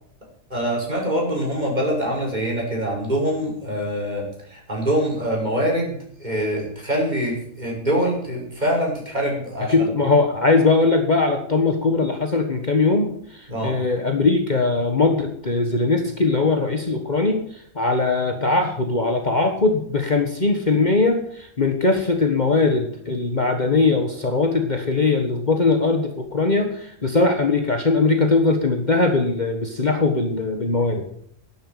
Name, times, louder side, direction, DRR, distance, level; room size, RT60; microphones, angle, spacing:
voice 1, 0.5-9.9 13.5-13.8, equal, 35° right, -1 dB, 6.1 m, -24 dB
voice 2, 9.7-17.4 17.7-31.1, left 3 dB, 35° left, 4 dB, 1.5 m, -20 dB
11.5 x 10.5 x 8.9 m, 0.65 s
omnidirectional pair, 1.3 m